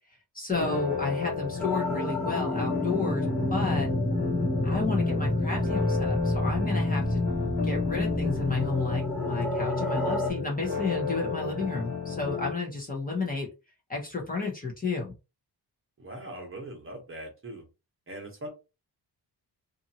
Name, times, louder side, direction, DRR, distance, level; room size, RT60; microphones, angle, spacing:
voice 1, 0.3-3.9 4.6-7.2 7.6-13.5 13.9-15.1, left 3 dB, 20° left, -2 dB, 0.8 m, -32 dB
sound 1, 0.5-12.5, left 5 dB, 85° left, 1.5 m, -32 dB
sound 2, 1.6-10.3, left 1 dB, ahead, 0.4 m, -29 dB
voice 2, 16.0-17.6 18.1-18.5, right 1 dB, 30° right, 1 dB, 1.0 m, -41 dB
2.6 x 2.6 x 2.8 m, 0.28 s
wide cardioid pair, 160°, 40 cm